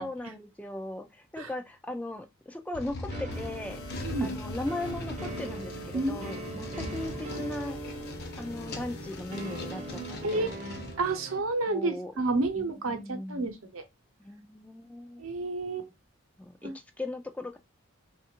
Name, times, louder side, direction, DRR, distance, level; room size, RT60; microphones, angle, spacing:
voice 1, 0.0-3.8 4.2-7.8 8.4-10.5 11.7-12.1 12.6-13.5 14.2-15.2 16.4-16.7 17.0-17.6, left 1 dB, 5° left, 0.3 m, -38 dB
sound 1, 2.7-11.0, left 2 dB, 50° left, 0.8 m, -40 dB
sound 2, 3.1-11.4, right 2 dB, 35° right, 0.6 m, -42 dB
sound 3, 3.3-11.3, left 2 dB, 85° left, 0.7 m, -48 dB
voice 2, 4.0-4.3 5.9-6.4 10.2-10.5 11.0-13.8 15.2-15.9 16.6-16.7, right 2 dB, 80° right, 0.8 m, -30 dB
3.2 x 2.4 x 4.4 m
head